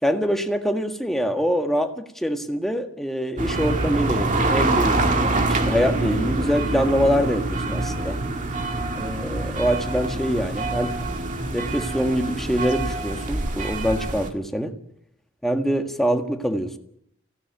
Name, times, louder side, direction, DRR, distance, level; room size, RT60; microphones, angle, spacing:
voice 1, 0.0-8.2 8.9-11.0 11.5-14.8 15.4-16.8, equal, ahead, 1.7 m, -24 dB
sound 1, 3.4-14.3, right 2 dB, 40° right, 1.9 m, -25 dB
17.5 x 16.0 x 9.3 m
head